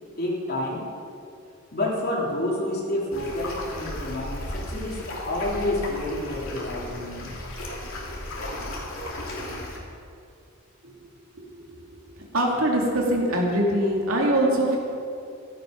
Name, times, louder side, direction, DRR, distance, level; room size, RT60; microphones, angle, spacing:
voice 1, 0.2-0.8 1.7-7.3, left 1 dB, 45° left, -4 dB, 3.3 m, -29 dB
sound 1, 3.1-9.8, left 1 dB, 70° left, 3.0 m, -35 dB
voice 2, 12.3-14.8, right 1 dB, 80° right, -1 dB, 2.7 m, -22 dB
15.5 x 12.0 x 5.3 m, 2.5 s
head